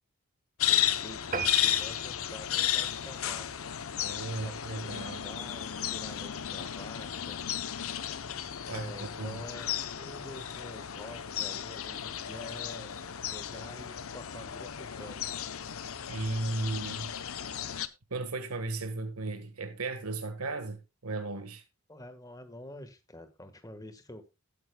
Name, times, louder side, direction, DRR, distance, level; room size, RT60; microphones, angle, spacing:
sound 1, 0.6-17.9, left 10 dB, 70° left, 0.8 m, -34 dB
voice 1, 0.7-3.5 4.3-7.6 8.7-12.9 13.3-15.2 21.9-24.3, left 1 dB, 15° left, 1.4 m, -48 dB
sound 2, 1.3-4.1 4.5-4.7 5.2-5.3 5.6-5.7 5.9-6.0, right 5 dB, 40° right, 1.3 m, -39 dB
voice 2, 4.0-5.2 8.7-9.5 16.1-17.1 18.1-21.6, right 2 dB, 85° right, 1.5 m, -35 dB
17.5 x 9.3 x 2.3 m
head